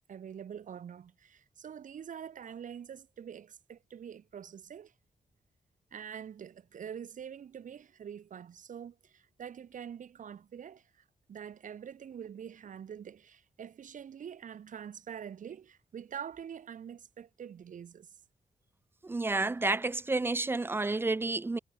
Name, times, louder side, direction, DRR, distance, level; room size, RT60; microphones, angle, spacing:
voice 1, 0.1-4.9 5.9-18.1, right 8 dB, 65° right, 2.3 m, -45 dB
voice 2, 19.0-21.6, right 3 dB, 15° right, 0.4 m, -30 dB
wide cardioid pair, 180°, 14 cm